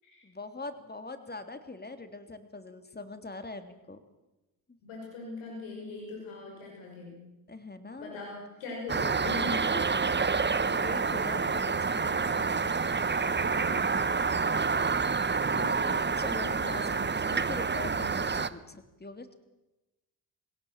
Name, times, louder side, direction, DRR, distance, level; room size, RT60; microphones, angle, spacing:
voice 1, 0.2-4.0 4.7-4.8 7.5-8.2 10.2-13.1 15.5-19.3, left 3 dB, 20° left, 9 dB, 3.2 m, -43 dB
voice 2, 4.8-7.3 8.0-9.7 13.4-13.9 15.5-16.2, left 3 dB, 75° left, -1 dB, 6.0 m, -41 dB
sound 1, 8.9-18.5, right 5 dB, 20° right, 1.2 m, -28 dB
23.5 x 17.5 x 7.5 m, 1.0 s
hypercardioid pair, 50°, 49 cm